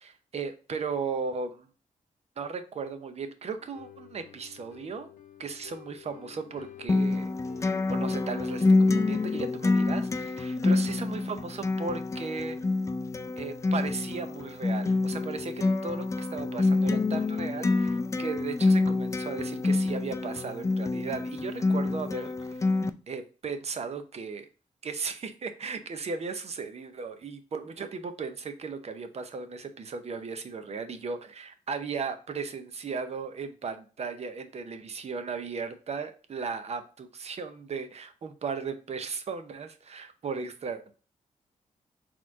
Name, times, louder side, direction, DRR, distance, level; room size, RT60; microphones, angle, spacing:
voice 1, 0.0-1.7 2.4-5.1 5.4-7.3 7.9-12.6 13.4-22.8 23.1-24.5 24.8-40.9, right 5 dB, 50° right, 9 dB, 0.7 m, -36 dB
sound 1, 3.6-9.4, left 8 dB, 75° left, 0.7 m, -50 dB
Acoustic guitar, 6.9-22.9, left 3 dB, 20° left, 0.3 m, -27 dB
4.2 x 3.0 x 3.6 m, 0.36 s
cardioid pair, 95°, 14 cm